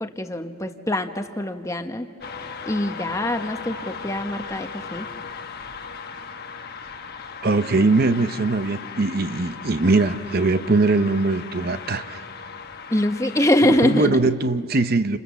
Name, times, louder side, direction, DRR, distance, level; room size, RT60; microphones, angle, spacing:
voice 1, 0.0-2.1 2.7-5.1 12.9-14.2, left 1 dB, 15° left, 6 dB, 1.0 m, -23 dB
sound 1, 2.2-14.1, left 5 dB, 50° left, 1.2 m, -37 dB
voice 2, 7.4-12.2 13.8-15.2, right 3 dB, 45° right, 11 dB, 0.7 m, -21 dB
30.0 x 27.5 x 7.2 m, 2.3 s
head